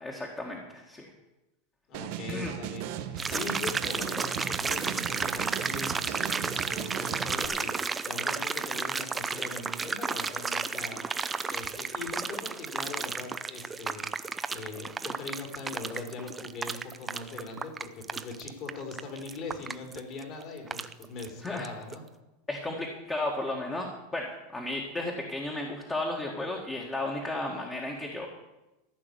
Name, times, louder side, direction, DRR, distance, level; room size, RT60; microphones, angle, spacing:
voice 1, 0.0-1.1 2.3-2.5 21.4-21.7 22.5-28.3, left 2 dB, 15° left, 0 dB, 1.8 m, -34 dB
voice 2, 1.9-11.0 11.5-14.1 14.5-22.0, left 3 dB, 40° left, 3 dB, 3.6 m, -41 dB
sound 1, 1.9-7.5, right 10 dB, 60° right, 1.1 m, -37 dB
sound 2, 3.2-21.7 21.9-22.0, right 4 dB, 15° right, 0.6 m, -33 dB
14.5 x 6.0 x 9.7 m, 1.0 s
supercardioid pair, 140°, 0 cm